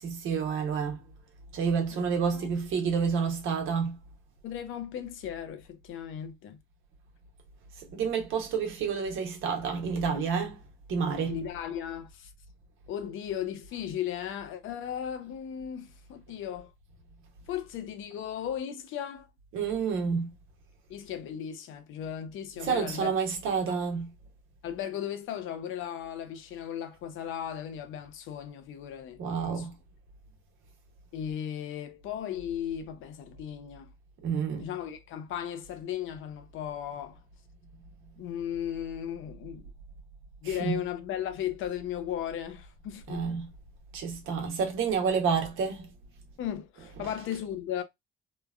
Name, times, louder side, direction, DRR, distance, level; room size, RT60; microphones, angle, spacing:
voice 1, 0.0-1.0 1.5-4.0 7.9-10.6 10.9-11.4 19.5-20.3 22.6-24.1 29.2-29.7 34.2-34.7 40.4-40.8 43.1-43.5 43.9-45.9 46.8-47.2, right 6 dB, 85° right, 1.0 m, -29 dB
voice 2, 4.4-6.6 11.3-12.3 12.9-16.7 17.5-19.3 20.9-23.1 23.7-23.8 24.6-29.7 31.1-33.9 34.6-37.2 38.2-39.7 40.4-43.3 46.4-47.8, left 9 dB, 85° left, 0.6 m, -36 dB
3.0 x 2.2 x 2.4 m
cardioid pair, 90°, 20 cm